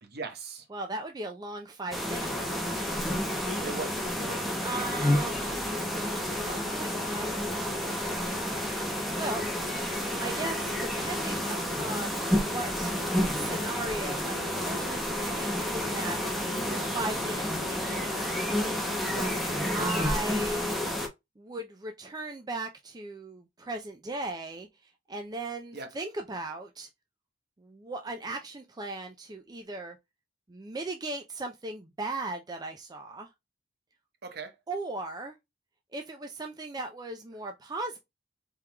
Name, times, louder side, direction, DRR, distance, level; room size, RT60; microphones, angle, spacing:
voice 1, 0.0-0.6 3.6-4.6 9.2-9.5 16.5-16.9 19.0-19.3 25.7-25.9 34.2-34.5, right 3 dB, 55° right, 1.0 m, -39 dB
voice 2, 0.7-2.6 4.6-5.7 6.3-8.0 8.9-9.4 10.2-12.9 13.3-16.2 16.9-18.2 19.7-20.8 21.4-24.7 25.1-26.9 27.6-30.0 30.5-33.3 34.7-35.3 35.9-38.0, right 2 dB, 20° right, 0.4 m, -37 dB
sound 1, 1.9-21.1, left 1 dB, ahead, 1.0 m, -30 dB
4.5 x 3.7 x 2.2 m
head